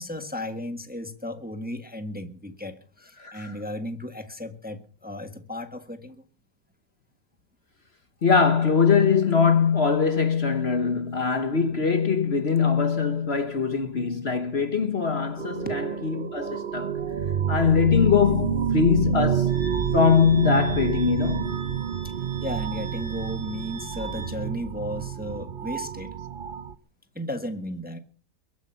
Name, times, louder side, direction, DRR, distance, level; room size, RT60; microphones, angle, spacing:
voice 1, 0.0-6.2 13.8-13.9 15.6-15.7 22.0-22.1 22.4-26.1 27.1-28.0, left 1 dB, 5° right, 1.3 m, -35 dB
voice 2, 3.2-3.6 8.2-17.0 17.5-19.5 19.9-21.6, left 6 dB, 45° left, 1.4 m, -22 dB
sound 1, 15.4-26.7, right 8 dB, 45° right, 0.8 m, -29 dB
Wind instrument woodwind instrument, 19.5-24.4, right 5 dB, 25° left, 5.0 m, -43 dB
23.0 x 9.3 x 5.7 m
omnidirectional pair, 1.6 m